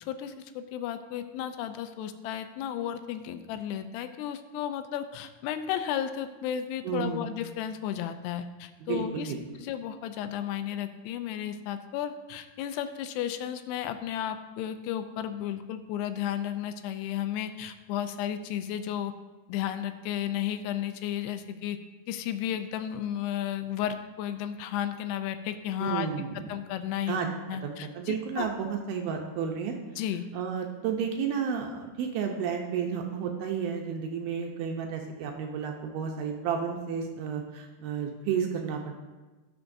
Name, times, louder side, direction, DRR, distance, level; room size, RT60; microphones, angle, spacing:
voice 1, 0.0-19.1 19.5-21.8 22.1-26.1 26.5-27.2 27.5-28.5 30.0-30.3, left 10 dB, 85° left, 9 dB, 2.7 m, -33 dB
voice 2, 6.8-7.3 8.8-9.4 25.8-26.5 27.1-27.3 27.6-29.8 30.3-38.9, right 7 dB, 75° right, 2 dB, 2.3 m, -32 dB
17.5 x 6.5 x 2.6 m, 1.2 s
omnidirectional pair, 4.8 m